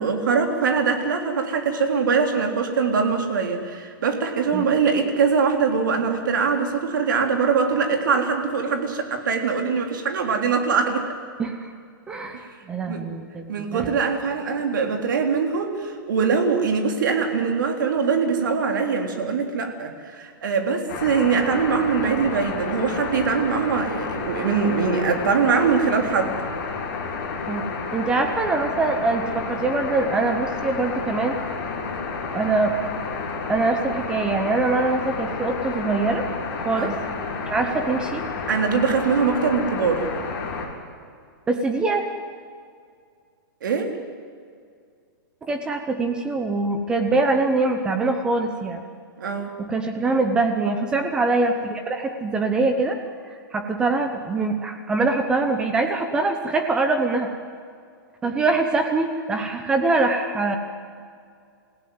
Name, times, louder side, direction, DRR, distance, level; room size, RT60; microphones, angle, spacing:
voice 1, 0.0-11.1 12.3-12.4 12.9-13.0 13.5-26.3 36.7-37.0 38.5-40.1 43.6-43.9 49.2-49.5, right 5 dB, 60° right, 4 dB, 3.6 m, -22 dB
voice 2, 11.4-11.7 12.1-14.0 27.5-27.7 27.9-31.4 32.3-32.7 33.5-36.2 36.6-36.9 37.5-38.2 41.5-42.0 45.4-48.8 49.6-53.0 53.3-57.3 58.2-60.6, right 3 dB, 5° right, 6 dB, 0.9 m, -23 dB
sound 1, 20.9-40.7, left 4 dB, 35° left, 4.0 m, -30 dB
27.5 x 16.5 x 9.5 m, 2.2 s
hypercardioid pair, 175°, 12 cm